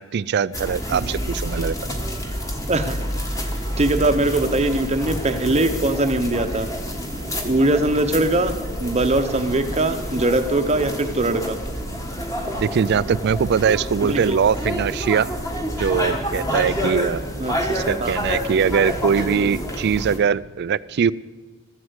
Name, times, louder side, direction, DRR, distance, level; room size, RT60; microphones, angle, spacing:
voice 1, 0.0-1.8 12.6-15.3 15.8-17.2 17.7-21.1, right 6 dB, 50° right, 19 dB, 0.3 m, -21 dB
sound 1, 0.5-20.2, equal, 15° left, 1.4 m, -28 dB
voice 2, 3.8-6.7 7.4-11.6 14.1-14.4 17.4-18.1, right 2 dB, 30° right, 8 dB, 0.8 m, -21 dB
14.0 x 7.9 x 8.2 m, 1.3 s
head